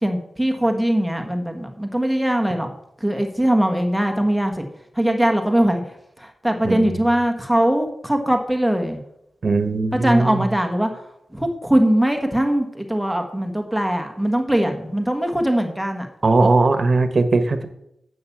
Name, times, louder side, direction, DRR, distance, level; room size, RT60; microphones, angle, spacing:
voice 1, 0.0-2.7 3.0-4.7 4.9-5.8 6.2-9.0 9.9-10.9 11.3-16.1, right 1 dB, 5° right, 4 dB, 1.5 m, -21 dB
voice 2, 9.4-10.5 16.2-17.7, right 3 dB, 50° right, 9 dB, 1.3 m, -19 dB
8.5 x 6.4 x 7.3 m, 0.78 s
cardioid pair, 70°, 0 cm